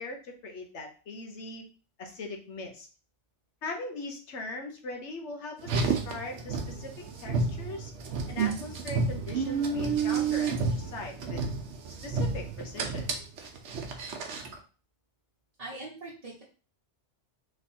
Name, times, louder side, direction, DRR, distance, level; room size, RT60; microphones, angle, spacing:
voice 1, 0.0-1.6 2.0-2.9 3.6-7.9 8.3-11.4 12.0-13.1, left 2 dB, 70° left, 3 dB, 1.2 m, -40 dB
Car, 5.6-14.6, right 4 dB, 70° right, 1.0 m, -31 dB
voice 2, 15.6-16.4, right 2 dB, 35° right, -6 dB, 1.0 m, -41 dB
3.3 x 3.1 x 4.2 m, 0.37 s
omnidirectional pair, 1.2 m